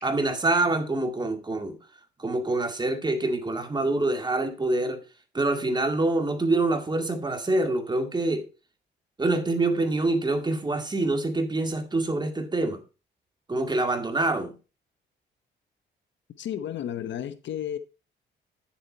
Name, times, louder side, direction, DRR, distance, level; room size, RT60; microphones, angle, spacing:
voice 1, 0.0-1.8 2.2-5.0 5.3-8.5 9.2-12.8 13.5-14.6, right 2 dB, 20° right, 2.1 m, -26 dB
voice 2, 16.4-17.8, left 10 dB, 65° left, 0.9 m, -32 dB
9.7 x 7.2 x 4.4 m
cardioid pair, 90°, 20 cm